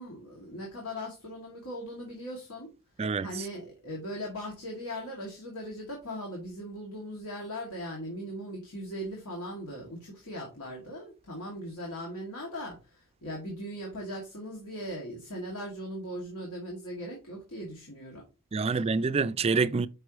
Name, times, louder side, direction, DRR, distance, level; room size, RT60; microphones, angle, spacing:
voice 1, 0.0-2.7 3.2-18.2 18.6-18.9, equal, 80° left, 2.1 m, -39 dB
voice 2, 3.0-3.5 18.5-19.9, right 4 dB, 25° right, 0.3 m, -27 dB
5.9 x 5.5 x 3.0 m
head